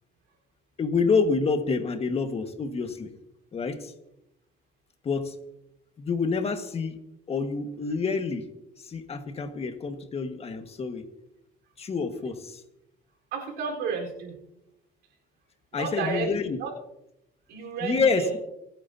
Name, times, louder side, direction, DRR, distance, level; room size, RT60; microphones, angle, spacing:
voice 1, 0.8-3.1 3.5-3.9 5.0-5.4 6.0-7.0 7.3-8.5 8.8-11.0 11.8-12.6 15.7-16.6 17.8-18.4, left 4 dB, 35° left, 7 dB, 1.6 m, -27 dB
voice 2, 13.3-14.4 15.7-16.3 16.6-16.7 17.5-18.3, right 5 dB, 85° right, 0 dB, 4.3 m, -31 dB
28.0 x 9.3 x 2.8 m, 0.84 s
cardioid pair, 110°, 17 cm